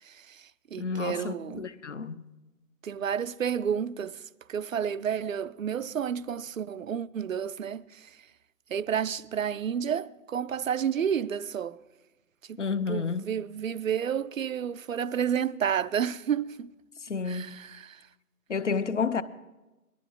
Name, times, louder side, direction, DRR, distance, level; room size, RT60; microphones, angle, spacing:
voice 1, 0.0-1.7 2.8-4.2 4.5-8.2 8.7-11.8 12.5-12.6 12.9-16.7 17.3-18.1, right 8 dB, 60° right, 0.5 m, -31 dB
voice 2, 0.8-2.2 12.6-13.3 17.0-17.7 18.5-19.2, left 5 dB, 50° left, 0.6 m, -30 dB
19.5 x 12.0 x 3.7 m
figure-of-eight pair, 160°, 47 cm